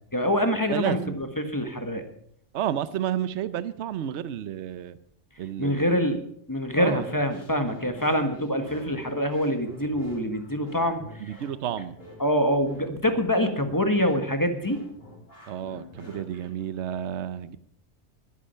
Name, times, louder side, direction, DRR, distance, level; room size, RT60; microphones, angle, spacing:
voice 1, 0.1-2.0 5.6-6.2 6.5-11.2 12.2-14.8, equal, 15° left, 7 dB, 1.4 m, -25 dB
voice 2, 0.7-1.2 2.5-5.0 5.4-6.2 6.8-7.1 11.2-12.0 15.5-17.6, right 10 dB, 65° right, 15 dB, 1.0 m, -31 dB
sound 1, 6.9-16.6, left 1 dB, 50° left, 3.9 m, -46 dB
21.0 x 8.6 x 5.6 m, 0.69 s
omnidirectional pair, 1.3 m